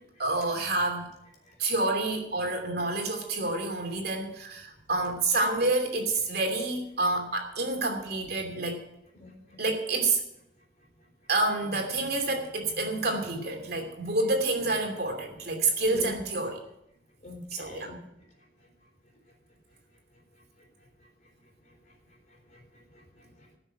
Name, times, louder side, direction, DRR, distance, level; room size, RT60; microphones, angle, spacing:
voice 1, 0.2-1.1 1.6-8.8 9.6-10.2 11.3-16.6 17.5-17.9, right 2 dB, 55° right, 3 dB, 2.8 m, -28 dB
voice 2, 9.2-9.6 15.9-16.2 17.2-18.0 22.5-23.5, left 1 dB, 40° left, 1 dB, 3.9 m, -44 dB
15.0 x 6.5 x 8.9 m, 0.81 s
head